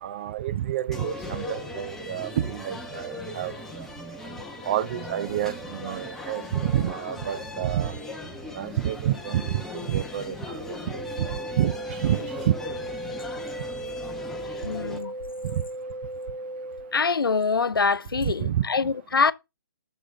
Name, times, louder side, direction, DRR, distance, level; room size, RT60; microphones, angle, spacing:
voice 1, 0.0-3.9 4.6-7.9 8.5-11.3 11.6-12.2 15.5-15.6 18.2-18.6, right 11 dB, 30° right, 0.3 m, -29 dB
sound 1, 0.9-15.0, left 2 dB, 5° left, 0.8 m, -38 dB
sound 2, 10.9-16.9, right 1 dB, 70° right, 3.5 m, -36 dB
voice 2, 14.6-15.1 16.9-19.3, left 5 dB, 75° left, 0.6 m, -24 dB
6.9 x 6.5 x 2.6 m
figure-of-eight pair, 140°, 12 cm